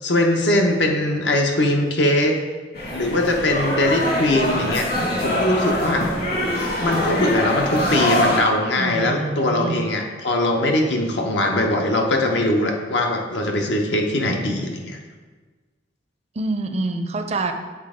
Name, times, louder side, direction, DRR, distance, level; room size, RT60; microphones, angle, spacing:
voice 1, 0.0-2.4 2.9-4.9 5.2-6.1 6.8-15.0, left 1 dB, 75° left, 2 dB, 0.8 m, -21 dB
sound 1, 2.7-8.4, equal, 55° left, 1.5 m, -23 dB
voice 2, 8.8-9.8 16.4-17.5, right 2 dB, 35° right, 6 dB, 0.4 m, -26 dB
7.4 x 4.2 x 3.7 m, 1.4 s
head